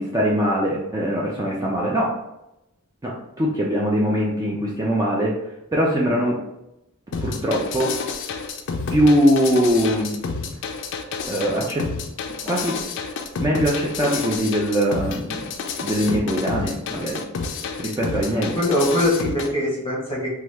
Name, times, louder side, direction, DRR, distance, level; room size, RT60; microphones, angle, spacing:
voice 1, 0.0-2.1 3.0-5.3 5.7-6.4 7.2-7.9 8.9-10.1 11.3-11.9 12.4-12.8 13.4-15.5 15.8-17.2 17.8-18.6, equal, 15° right, -4 dB, 0.4 m, -21 dB
sound 1, 7.1-19.5, left 5 dB, 55° left, 0.4 m, -29 dB
voice 2, 18.3-20.3, left 1 dB, 25° left, -5 dB, 0.9 m, -22 dB
3.0 x 2.3 x 3.3 m, 0.88 s
head